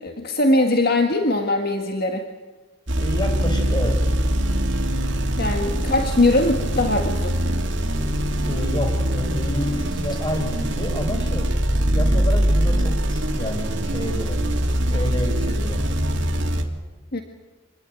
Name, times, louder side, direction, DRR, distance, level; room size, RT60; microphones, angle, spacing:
voice 1, 0.0-2.3 5.4-7.4 17.1-17.2, left 2 dB, 50° left, 4 dB, 1.8 m, -21 dB
sound 1, 2.9-16.6, equal, 65° right, 2.8 m, -23 dB
voice 2, 3.0-4.0 8.5-11.5 11.9-14.4 14.9-15.8, left 1 dB, 25° left, 5 dB, 5.2 m, -29 dB
26.5 x 20.5 x 9.4 m, 1.2 s
head